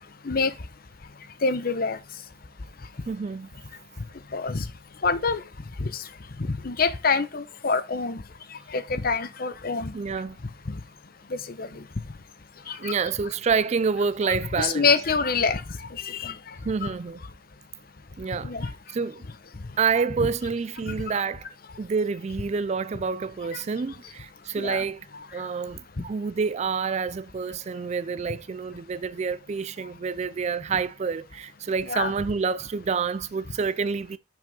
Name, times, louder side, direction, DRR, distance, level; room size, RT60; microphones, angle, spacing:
voice 1, 1.4-2.0 4.3-4.7 5.0-5.4 5.8-6.1 6.4-8.2 8.7-9.9 10.7-10.8 11.3-11.8 12.7-12.9 14.6-16.4 16.8-16.9 18.4-18.7 20.2-20.3 20.9-21.0 23.5-23.6 24.6-24.8 31.9-32.1, left 4 dB, 55° left, 0.8 m, -26 dB
voice 2, 3.1-3.5 9.9-10.4 12.8-14.9 16.6-17.2 18.2-18.5 18.9-19.3 19.8-21.5 21.8-25.1 25.3-34.2, right 5 dB, 35° right, 0.4 m, -28 dB
6.2 x 5.3 x 5.3 m
head